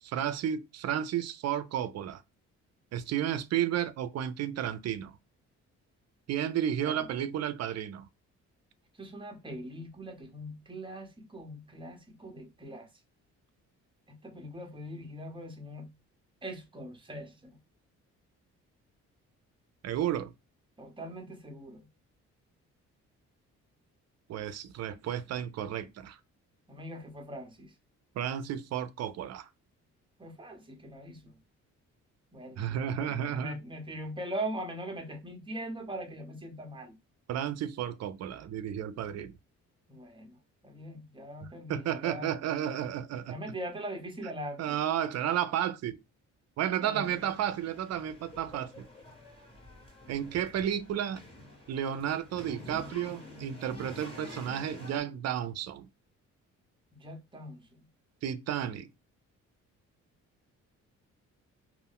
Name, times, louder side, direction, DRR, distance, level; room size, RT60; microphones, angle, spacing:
voice 1, 0.0-2.2 2.9-5.2 6.3-8.1 19.8-20.3 24.3-26.2 28.1-29.5 32.6-33.6 37.3-39.4 41.4-43.4 44.6-46.0 46.6-48.9 50.1-51.2 51.7-55.9 58.2-58.9, right 10 dB, 60° right, 0.5 m, -32 dB
voice 2, 9.0-12.9 14.1-15.9 16.4-17.6 20.8-21.9 26.7-27.7 30.2-31.4 32.3-37.0 39.9-40.4 40.6-42.4 43.3-44.8 46.8-47.3 56.9-57.6, right 1 dB, 15° right, 0.8 m, -41 dB
sound 1, 47.0-55.0, left 1 dB, 20° left, 1.3 m, -48 dB
2.4 x 2.1 x 3.5 m
cardioid pair, 90°, 30 cm